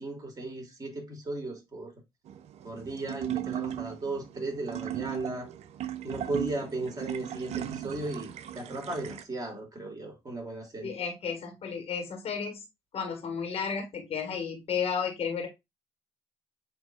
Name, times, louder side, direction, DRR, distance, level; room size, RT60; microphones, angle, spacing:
voice 1, 0.0-1.9 2.6-5.5 6.0-11.0, right 2 dB, 30° right, 2.4 m, -36 dB
sound 1, 2.3-9.2, right 12 dB, 55° right, 0.5 m, -37 dB
voice 2, 10.8-12.6 12.9-15.5, left 6 dB, 50° left, 1.6 m, -33 dB
7.7 x 2.8 x 2.3 m
hypercardioid pair, 50°, 13 cm